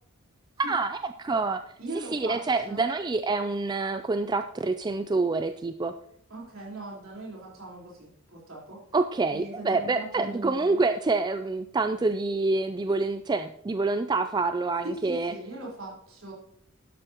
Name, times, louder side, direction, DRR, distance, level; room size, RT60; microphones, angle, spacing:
voice 1, 0.6-1.6 2.1-5.9 8.9-15.3, right 3 dB, 20° right, 9 dB, 0.3 m, -27 dB
voice 2, 1.8-2.4 2.7-2.9 6.3-8.8 9.3-10.8 14.8-16.3, right 2 dB, 60° right, -4 dB, 4.2 m, -40 dB
12.0 x 11.5 x 2.9 m, 0.73 s
head